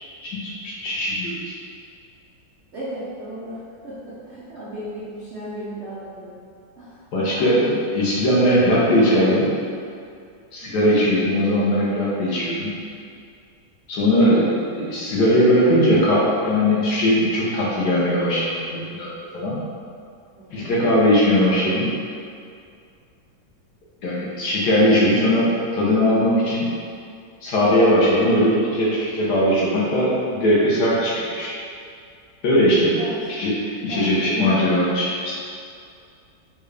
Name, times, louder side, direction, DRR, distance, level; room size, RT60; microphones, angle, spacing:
voice 1, 0.2-1.4 7.1-9.5 10.5-12.8 13.9-19.1 19.3-19.6 20.5-21.9 24.0-26.7 27.4-31.5 32.4-33.0 33.3-35.3, equal, 65° left, -6 dB, 1.1 m, -19 dB
voice 2, 2.7-6.3 6.8-7.0 7.6-7.8 10.6-11.0 20.3-20.8 33.0-33.3 33.9-34.4 34.7-34.9, right 1 dB, 85° right, -10 dB, 0.6 m, -35 dB
3.6 x 2.3 x 3.2 m, 2.4 s
omnidirectional pair, 2.1 m